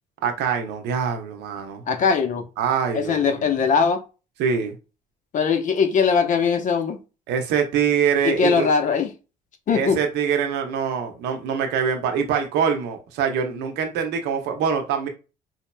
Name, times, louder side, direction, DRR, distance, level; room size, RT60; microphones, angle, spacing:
voice 1, 0.2-1.8 2.6-3.5 4.4-4.8 7.3-8.7 9.7-15.1, right 7 dB, 85° right, 0.9 m, -24 dB
voice 2, 1.9-2.4 2.9-4.0 5.3-7.0 8.2-9.1 9.7-10.0, left 6 dB, 50° left, 0.9 m, -20 dB
4.8 x 2.8 x 2.2 m
cardioid pair, 110°, 17 cm